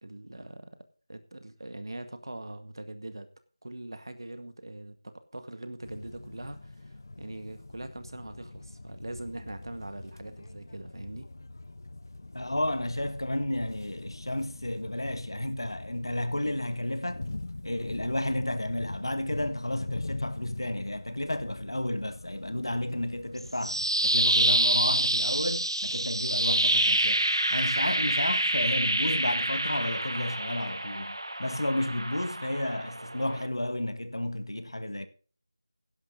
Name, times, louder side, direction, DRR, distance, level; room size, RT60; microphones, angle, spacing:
voice 1, 0.0-0.8 1.1-3.3 3.6-11.3 25.0-25.1, right 1 dB, 70° right, 1.9 m, -42 dB
sound 1, 5.8-23.9, left 2 dB, 50° left, 0.7 m, -43 dB
voice 2, 12.3-17.3 17.6-23.8 24.0-35.1, left 1 dB, 85° left, 1.6 m, -32 dB
sound 2, 23.4-33.5, right 1 dB, 90° right, 0.9 m, -27 dB
12.0 x 11.0 x 3.9 m
figure-of-eight pair, 170°, 2 cm